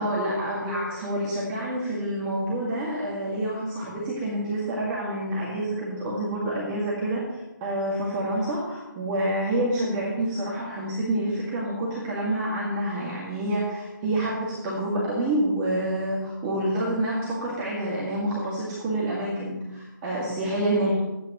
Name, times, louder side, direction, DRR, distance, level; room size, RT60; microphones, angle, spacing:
voice 1, 0.0-21.0, right 1 dB, 15° right, -6 dB, 2.1 m, -28 dB
21.0 x 9.1 x 3.1 m, 1.0 s
figure-of-eight pair, 160°, 11 cm